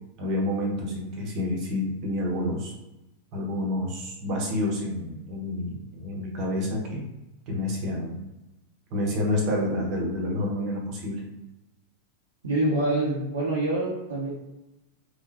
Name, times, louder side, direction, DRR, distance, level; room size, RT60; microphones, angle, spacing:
voice 1, 0.2-2.7 3.3-7.1 7.5-8.2 8.9-11.2, left 1 dB, 40° right, -1 dB, 1.0 m, -29 dB
voice 2, 12.4-14.3, right 2 dB, 65° right, -7 dB, 0.8 m, -26 dB
3.6 x 2.2 x 2.8 m, 0.97 s
figure-of-eight pair, 90°, 0 cm